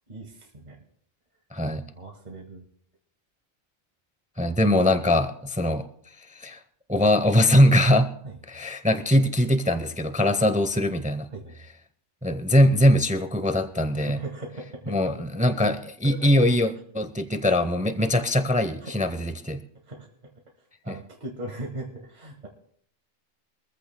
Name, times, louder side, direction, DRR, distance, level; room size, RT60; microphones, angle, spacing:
voice 1, 0.1-0.8 2.0-2.7 8.2-8.4 11.3-11.6 13.9-15.0 16.0-16.3 18.8-18.9 19.8-20.3 20.8-22.5, right 2 dB, 30° right, 0 dB, 1.8 m, -39 dB
voice 2, 1.5-1.8 4.4-5.9 6.3-6.6 6.9-8.1 8.5-11.3 12.2-14.2 14.9-19.6, left 1 dB, 10° right, 10 dB, 0.4 m, -22 dB
24.0 x 14.5 x 2.2 m, 0.64 s
omnidirectional pair, 1.4 m